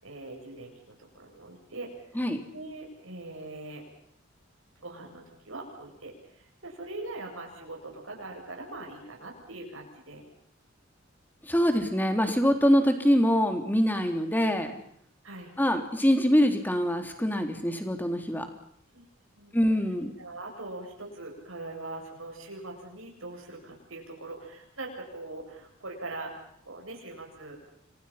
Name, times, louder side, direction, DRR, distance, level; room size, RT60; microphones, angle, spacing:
voice 1, 0.0-1.9 2.5-3.8 4.8-10.2 15.2-15.5 18.9-19.0 19.3-19.5 20.2-26.3 26.7-27.6, right 2 dB, 75° right, 1 dB, 7.8 m, -42 dB
voice 2, 11.4-14.8 15.6-18.5 19.5-20.1, equal, 10° left, 6 dB, 3.3 m, -24 dB
30.0 x 25.0 x 5.8 m, 0.68 s
head